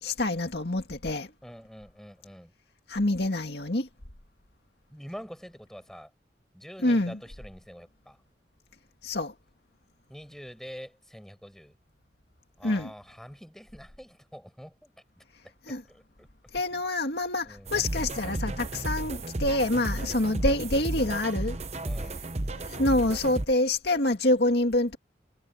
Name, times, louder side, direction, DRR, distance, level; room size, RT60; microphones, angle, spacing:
voice 1, 0.0-1.3 2.9-3.9 6.8-7.2 9.0-9.3 12.6-12.9 15.7-15.8 16.5-21.6 22.5-25.0, left 1 dB, 65° left, 2.1 m, -26 dB
voice 2, 1.4-2.5 4.9-6.1 6.5-8.2 10.1-11.8 12.6-15.2 15.7-16.3 16.7-16.8 17.4-17.8 20.0-20.3 21.8-22.2, equal, ahead, 6.1 m, -46 dB
sound 1, 17.7-23.5, right 2 dB, 35° right, 0.9 m, -33 dB
head